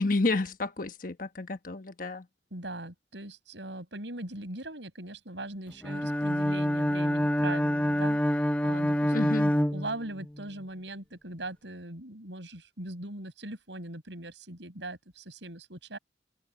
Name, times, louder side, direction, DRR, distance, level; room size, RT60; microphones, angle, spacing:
voice 1, 0.0-2.2 9.1-9.5, left 3 dB, 50° left, 1.2 m, -30 dB
voice 2, 2.5-16.0, right 1 dB, 80° right, 6.9 m, -40 dB
Bowed string instrument, 5.8-10.4, equal, 5° left, 0.8 m, -26 dB
head